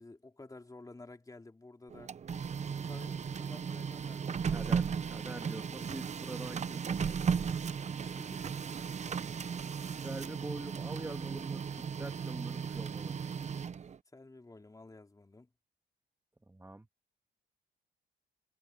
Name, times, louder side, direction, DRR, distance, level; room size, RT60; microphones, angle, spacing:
voice 1, 0.0-2.1 2.8-4.8 7.9-8.8 14.1-15.5, left 2 dB, 15° left, 3.3 m, -53 dB
Printer, 1.9-14.0, right 6 dB, 35° right, 0.7 m, -36 dB
voice 2, 4.5-7.2 10.0-13.3 16.5-16.9, right 2 dB, 10° right, 2.0 m, -45 dB
cardioid pair, 90°, 20 cm